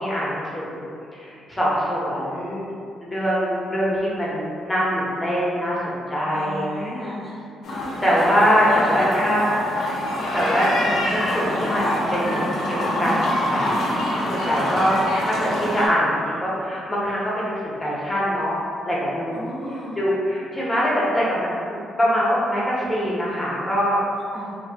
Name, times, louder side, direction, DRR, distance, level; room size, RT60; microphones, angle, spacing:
voice 1, 0.0-2.7 3.0-6.9 8.0-9.4 10.0-13.8 14.3-18.6 18.8-19.4 20.0-24.0, equal, 15° left, -7 dB, 0.8 m, -23 dB
voice 2, 6.3-7.4 19.3-20.0 24.3-24.6, equal, 15° right, -7 dB, 0.4 m, -34 dB
sound 1, 7.6-15.9, left 1 dB, 70° left, 0.6 m, -25 dB
3.0 x 2.0 x 2.6 m, 2.4 s
cardioid pair, 90°, 0 cm